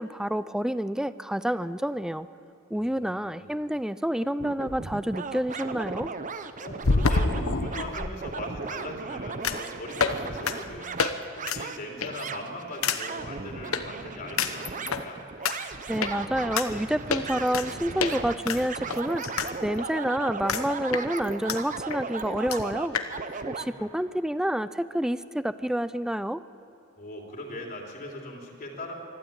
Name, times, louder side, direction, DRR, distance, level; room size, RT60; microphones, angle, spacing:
voice 1, 0.0-2.3 2.7-6.1 15.9-23.0 23.5-26.4, equal, 5° right, 14 dB, 0.4 m, -28 dB
voice 2, 2.7-3.6 6.6-15.2 23.5-23.9 27.0-28.9, left 1 dB, 45° left, 0 dB, 3.3 m, -40 dB
sound 1, 4.3-4.4 6.8-8.1 9.4-9.7 10.0-10.2 10.5-10.6 11.0-11.1 11.4-11.6 12.0-12.3 12.8-13.0 13.7-13.8 14.4-15.0 15.4-15.5 16.0-16.1 16.6-16.7 17.1-17.7 18.0-18.1 18.5-19.5 19.8-19.9 20.5-20.6 20.9-21.6 21.9-22.0 22.2-22.3 22.5-22.6 22.9-23.1, left 4 dB, 80° left, 1.0 m, -26 dB
sound 2, 4.4-23.7, right 4 dB, 40° right, 0.8 m, -36 dB
24.5 x 13.0 x 8.7 m, 2.7 s
head